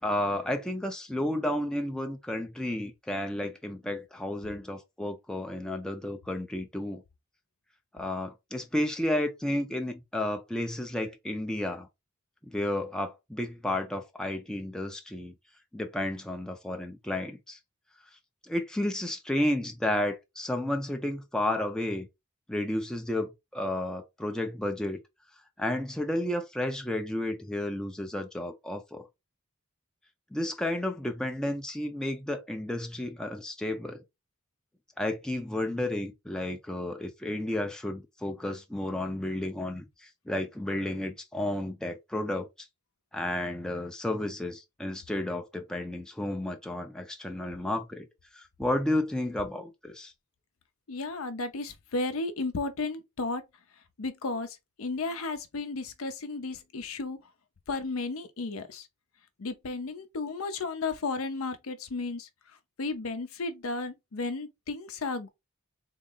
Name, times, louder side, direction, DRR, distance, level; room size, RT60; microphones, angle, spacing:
voice 1, 0.0-7.0 7.9-11.9 12.5-15.3 15.7-17.6 18.5-22.1 22.5-25.0 25.6-29.1 30.3-34.0 35.0-42.5 43.1-48.1 48.3-50.1, left 1 dB, 5° left, 0.4 m, -32 dB
voice 2, 50.9-53.4 54.0-57.2 57.7-58.9 59.4-62.3 62.8-65.3, left 3 dB, 70° left, 0.6 m, -34 dB
3.7 x 2.0 x 3.7 m
head